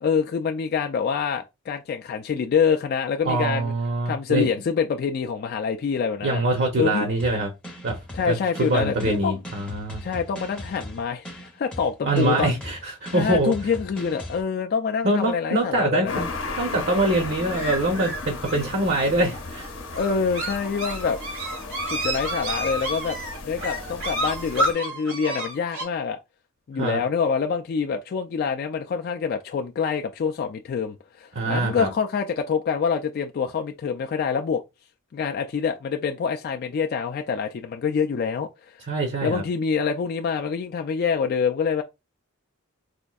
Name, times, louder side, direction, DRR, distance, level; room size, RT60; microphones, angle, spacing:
voice 1, 0.0-3.7 4.1-6.4 6.8-7.1 8.1-9.4 10.0-12.6 13.1-16.2 19.9-21.2 21.9-23.2 23.4-26.2 26.7-34.6 35.1-38.7 39.2-41.8, left 6 dB, 45° left, 0.3 m, -26 dB
voice 2, 3.2-4.5 6.2-7.5 7.8-8.0 8.2-10.0 12.0-13.5 15.0-16.3 16.6-19.7 26.8-27.0 31.3-31.9 38.9-39.4, right 2 dB, 50° right, 0.7 m, -24 dB
sound 1, 7.2-14.4, left 1 dB, 5° left, 0.6 m, -39 dB
sound 2, 16.1-24.7, left 3 dB, 65° left, 0.7 m, -35 dB
sound 3, 17.5-25.8, right 1 dB, 85° right, 1.6 m, -30 dB
4.2 x 2.6 x 2.3 m
head